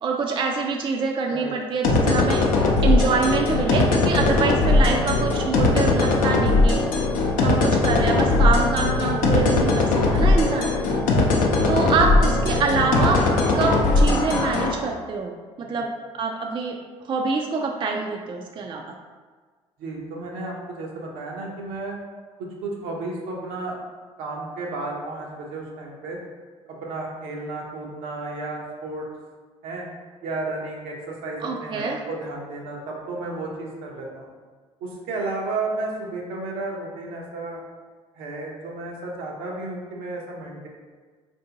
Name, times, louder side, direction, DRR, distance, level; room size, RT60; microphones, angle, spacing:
voice 1, 0.0-2.4 2.8-6.8 7.4-10.7 11.7-13.2 13.5-15.3 15.6-16.8 17.0-18.8 31.4-32.0, right 4 dB, 35° right, 2 dB, 0.4 m, -25 dB
sound 1, 1.8-14.7, left 3 dB, 70° left, 0.6 m, -19 dB
voice 2, 19.8-22.0 22.4-23.8 24.2-26.2 26.7-29.1 29.6-29.9 30.2-34.3 34.8-37.6 38.1-40.7, right 2 dB, 75° right, -1 dB, 0.7 m, -33 dB
3.4 x 2.6 x 2.8 m, 1.5 s
hypercardioid pair, 60°, 14 cm